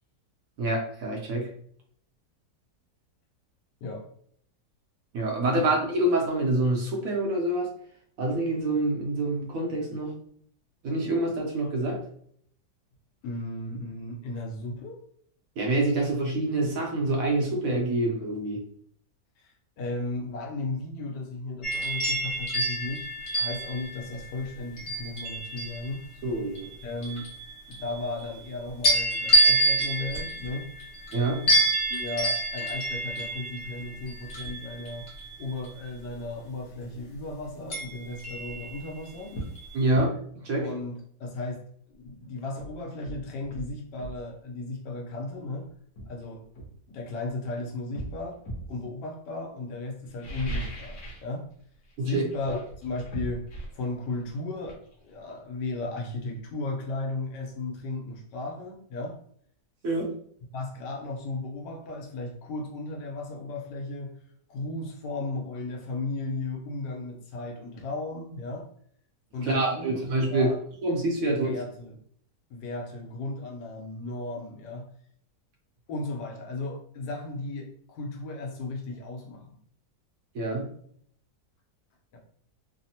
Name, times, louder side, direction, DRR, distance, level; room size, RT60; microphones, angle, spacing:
voice 1, 0.6-1.5 5.1-7.7 8.2-10.1 10.8-12.1 15.6-18.7 26.2-26.7 31.1-31.5 39.7-40.7 52.0-52.3 59.8-60.2 69.4-70.5 70.8-71.6 80.3-80.7, right 2 dB, 65° right, 0 dB, 0.9 m, -26 dB
voice 2, 13.2-15.0 19.4-23.1 23.4-26.1 26.8-27.3 27.7-30.7 31.9-35.1 35.4-39.4 40.6-45.7 46.1-46.4 46.9-48.4 48.7-51.5 52.0-53.5 53.7-54.8 55.0-59.2 60.5-64.2 64.5-68.7 69.3-70.0 70.3-70.6 71.3-72.0 72.5-74.9 75.9-79.6 82.1-82.2, left 2 dB, 85° left, 1 dB, 1.3 m, -35 dB
sound 1, 21.6-26.0 26.5-28.5 28.8-35.8 37.7-39.1 39.5-39.8, right 1 dB, 50° left, 1.1 m, -28 dB
sound 2, 38.6-38.7 39.3-39.6 39.9-40.1 42.0-42.1 42.6-44.2 45.3-45.4 46.0-47.4 47.9-48.8 50.0-51.3 51.6-51.9 52.3-55.8 56.1-56.2, right 1 dB, 70° left, 1.2 m, -39 dB
3.2 x 2.0 x 2.7 m, 0.63 s
omnidirectional pair, 1.8 m